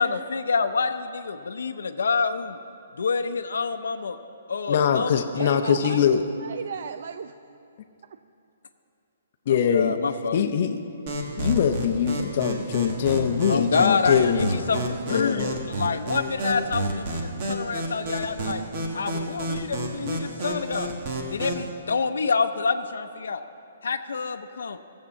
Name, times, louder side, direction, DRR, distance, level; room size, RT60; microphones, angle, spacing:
voice 1, 0.0-2.6 3.0-4.2 4.5-5.1 5.4-6.1 9.5-10.4 13.5-18.6 18.9-20.9 21.3-23.4 23.8-24.8, left 5 dB, 90° left, 8 dB, 0.6 m, -27 dB
voice 2, 4.7-6.2 9.5-10.0 10.3-10.8 11.4-14.8 15.1-15.6, left 8 dB, 40° left, 6 dB, 0.6 m, -23 dB
voice 3, 5.4-7.3 8.1-8.2, right 6 dB, 55° right, 10 dB, 0.3 m, -34 dB
sound 1, 11.1-21.7, right 1 dB, 35° right, 1.3 m, -30 dB
15.0 x 7.4 x 7.1 m, 2.7 s
hypercardioid pair, 170°, 0 cm